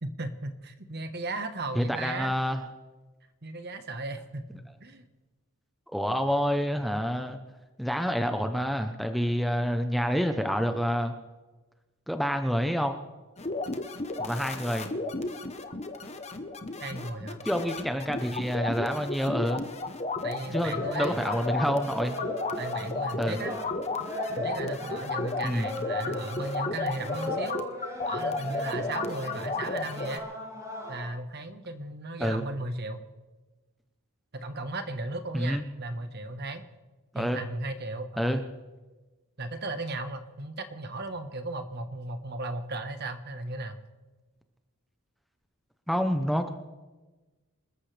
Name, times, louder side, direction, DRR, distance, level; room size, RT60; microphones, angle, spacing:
voice 1, 0.0-2.3 3.4-5.0 16.8-17.4 20.2-21.2 22.6-23.6 24.3-27.6 28.0-30.3 30.9-33.0 34.3-36.6 37.1-38.4 39.4-43.8, right 2 dB, 45° right, 8 dB, 1.3 m, -36 dB
voice 2, 1.7-2.6 5.9-7.4 7.8-11.1 12.1-13.0 14.2-14.9 17.4-19.6 20.5-22.2 23.2-23.4 25.4-25.7 32.2-32.4 35.3-35.6 37.1-37.4 38.2-38.4 45.9-46.5, equal, ahead, 6 dB, 0.8 m, -28 dB
sound 1, 13.4-30.2, left 3 dB, 30° left, 0.9 m, -34 dB
sound 2, 20.6-31.1, equal, 15° right, 5.6 m, -38 dB
27.0 x 14.0 x 3.4 m, 1.2 s
head